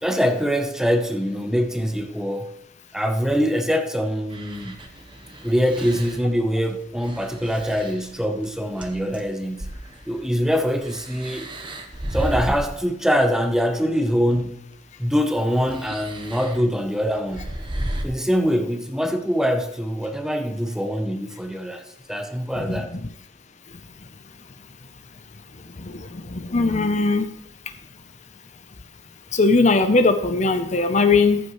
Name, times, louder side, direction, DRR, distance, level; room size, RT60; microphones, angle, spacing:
voice 1, 0.0-2.5 2.9-4.9 5.4-9.8 10.1-11.5 12.1-14.7 15.0-17.5 18.0-23.0, equal, 5° right, 0.8 m, -24 dB
sound 1, 4.3-6.3 7.0-9.3 9.6-12.8 14.0-14.1 15.6-16.6 17.3-18.0, right 1 dB, 25° right, 1.0 m, -33 dB
voice 2, 26.3-27.3 29.3-31.4, left 3 dB, 35° left, 0.6 m, -19 dB
14.5 x 8.4 x 3.1 m
head